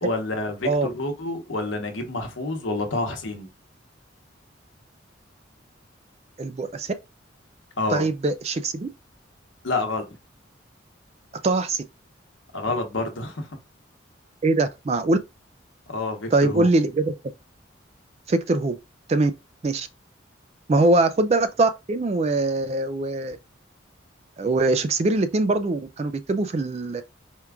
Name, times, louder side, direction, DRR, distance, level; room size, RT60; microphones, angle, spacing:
voice 1, 0.0-3.5 7.8-8.1 9.6-10.1 12.5-13.5 15.9-16.7, left 2 dB, 80° left, 1.0 m, -28 dB
voice 2, 6.4-6.9 7.9-8.9 11.4-11.8 14.4-15.2 16.3-17.2 18.3-18.8 19.1-19.3 19.6-19.9 20.7-23.4 24.4-27.0, right 2 dB, 30° right, 0.3 m, -22 dB
4.4 x 2.4 x 3.4 m
head